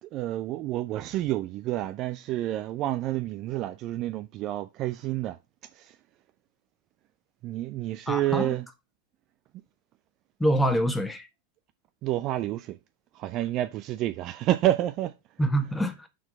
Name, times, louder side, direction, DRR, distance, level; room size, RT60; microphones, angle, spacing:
voice 1, 0.0-5.4 5.8-5.9 7.4-8.6 12.0-12.8 13.1-15.1, right 14 dB, 35° right, 0.5 m, -29 dB
voice 2, 8.1-8.6 10.4-11.3 15.4-16.1, right 1 dB, 5° left, 1.3 m, -25 dB
6.2 x 4.4 x 5.5 m
figure-of-eight pair, 90°, 0 cm